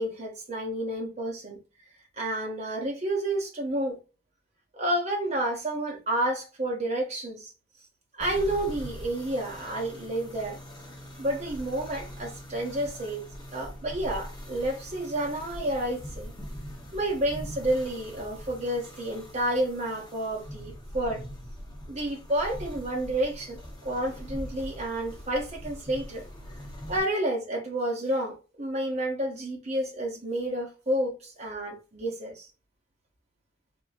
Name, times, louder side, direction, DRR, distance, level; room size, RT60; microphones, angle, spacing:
voice 1, 0.0-1.6 2.1-4.0 4.7-7.5 8.2-10.6 11.2-13.2 13.5-16.3 16.9-21.2 21.9-26.2 26.9-32.5, right 1 dB, 35° right, 0.8 m, -30 dB
sound 1, 8.2-27.0, equal, 20° left, 1.1 m, -42 dB
3.6 x 2.6 x 2.4 m
head